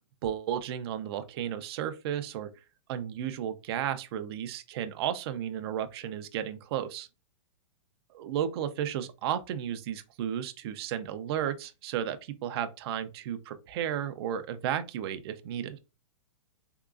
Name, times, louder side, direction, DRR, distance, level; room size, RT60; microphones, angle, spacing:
voice 1, 0.2-2.5 2.9-7.1 8.1-15.8, right 9 dB, 50° right, 0.5 m, -33 dB
3.7 x 2.9 x 2.4 m
hypercardioid pair, 145°, 17 cm